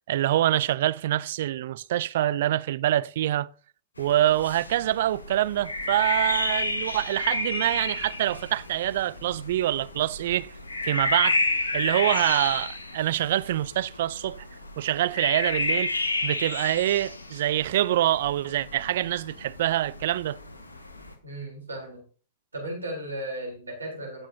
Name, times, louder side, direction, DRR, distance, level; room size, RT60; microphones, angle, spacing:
voice 1, 0.1-3.5 4.0-10.5 10.8-11.4 11.7-14.4 14.8-15.9 16.2-20.4, right 13 dB, 60° right, 0.4 m, -25 dB
sound 1, 4.0-21.1, left 2 dB, 90° left, 1.4 m, -32 dB
voice 2, 21.2-22.0 22.5-24.3, right 1 dB, 85° right, 3.7 m, -35 dB
15.5 x 6.2 x 2.8 m
figure-of-eight pair, 105°, 0 cm